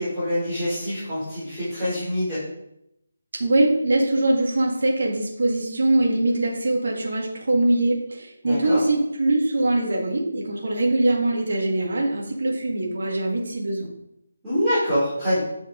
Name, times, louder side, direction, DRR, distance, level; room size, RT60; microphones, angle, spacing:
voice 1, 0.0-2.4 8.4-8.8 14.4-15.4, equal, 5° right, -15 dB, 2.9 m, -25 dB
voice 2, 3.3-13.9, right 2 dB, 70° right, -1 dB, 1.8 m, -22 dB
8.0 x 5.1 x 3.8 m, 0.82 s
figure-of-eight pair, 170°, 0 cm